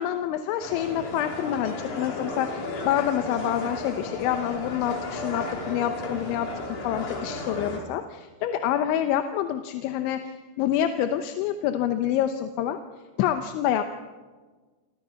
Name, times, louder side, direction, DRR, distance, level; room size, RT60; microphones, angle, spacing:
voice 1, 0.0-6.5 6.8-10.3 10.6-12.8 13.2-13.8, left 10 dB, 90° left, 7 dB, 3.4 m, -27 dB
sound 1, 0.6-7.8, left 2 dB, 45° left, 4.4 m, -34 dB
29.0 x 26.5 x 5.7 m, 1.4 s
omnidirectional pair, 5.2 m